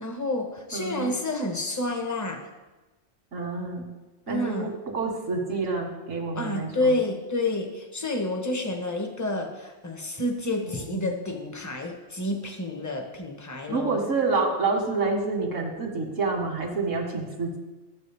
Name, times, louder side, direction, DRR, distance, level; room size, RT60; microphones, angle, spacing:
voice 1, 0.0-2.5 4.3-4.7 6.3-14.0, left 2 dB, 15° left, 3 dB, 1.0 m, -29 dB
voice 2, 0.7-1.1 3.3-3.9 4.3-7.0 10.9-11.1 13.7-17.6, right 3 dB, 85° right, 0 dB, 2.1 m, -28 dB
13.5 x 7.6 x 3.4 m, 1.1 s
omnidirectional pair, 1.3 m